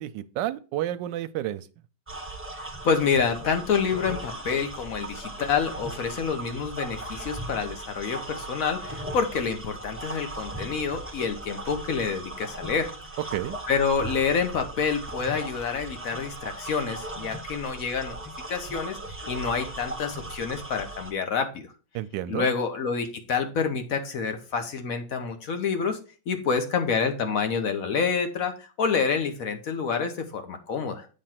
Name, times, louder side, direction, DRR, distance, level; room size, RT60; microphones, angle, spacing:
voice 1, 0.0-1.7 13.3-13.6 21.9-22.5, right 13 dB, 75° right, 1.2 m, -30 dB
sound 1, 2.1-21.1, right 2 dB, 10° right, 0.5 m, -38 dB
voice 2, 2.5-12.9 13.7-18.2 18.5-19.0 19.3-21.7 22.3-26.0 26.3-31.1, left 6 dB, 55° left, 1.2 m, -28 dB
8.7 x 3.2 x 5.8 m
omnidirectional pair, 2.1 m